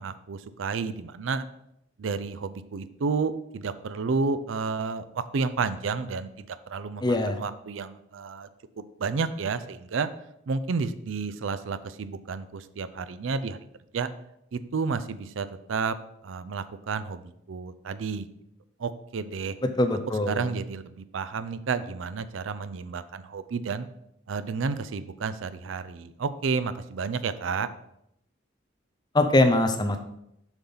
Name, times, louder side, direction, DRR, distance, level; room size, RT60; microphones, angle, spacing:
voice 1, 0.0-1.5 2.0-8.5 9.0-10.1 10.5-13.6 13.9-14.1 14.5-15.9 16.2-17.2 17.5-18.3 18.8-19.6 20.3-23.9 24.3-27.7, right 4 dB, 75° right, 12 dB, 0.5 m, -31 dB
voice 2, 7.0-7.4 19.6-20.5 29.1-30.0, left 2 dB, 20° left, 6 dB, 0.5 m, -22 dB
7.1 x 5.5 x 3.9 m, 0.78 s
head